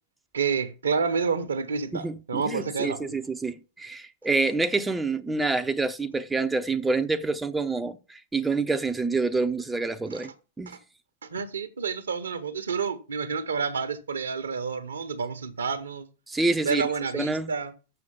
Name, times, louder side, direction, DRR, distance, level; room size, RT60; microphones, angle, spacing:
voice 1, 0.3-3.2 10.1-10.2 10.7-10.8 11.2-16.1 16.6-17.7, right 5 dB, 70° right, 1.0 m, -29 dB
voice 2, 1.9-10.3 10.6-10.7 16.3-16.9 17.1-17.5, right 3 dB, 10° right, 0.6 m, -27 dB
6.8 x 6.4 x 7.0 m
figure-of-eight pair, 90°, 0 cm